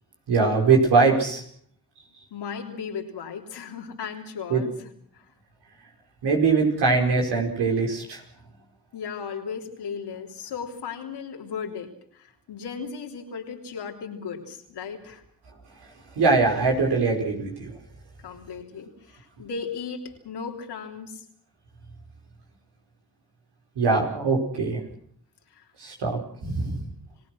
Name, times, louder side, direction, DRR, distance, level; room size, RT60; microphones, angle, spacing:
voice 1, 0.3-1.4 4.5-4.6 6.2-8.2 15.8-15.9 16.1-17.7 23.7-24.8 25.8-26.9, right 4 dB, 90° right, 1 dB, 5.0 m, -22 dB
voice 2, 2.3-4.8 5.1-5.3 8.9-15.2 18.2-21.2 25.5-25.7, left 6 dB, 90° left, 2 dB, 3.3 m, -36 dB
30.0 x 17.0 x 6.3 m, 0.62 s
supercardioid pair, 40°, 39 cm